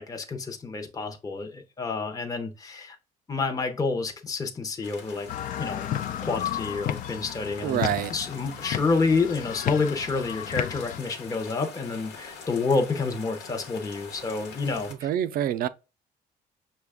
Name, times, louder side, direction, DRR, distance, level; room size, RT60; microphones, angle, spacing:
voice 1, 0.0-3.0 3.3-5.3 5.6-5.9 6.2-7.8 8.1-14.9, left 4 dB, 20° left, 0.7 m, -28 dB
sound 1, 4.8-14.9, left 5 dB, 90° left, 1.1 m, -44 dB
sound 2, 5.3-11.0, left 11 dB, 55° left, 0.4 m, -33 dB
voice 2, 7.6-8.1 14.9-15.7, right 11 dB, 60° right, 0.4 m, -26 dB
5.9 x 2.2 x 3.5 m
cardioid pair, 110°, 17 cm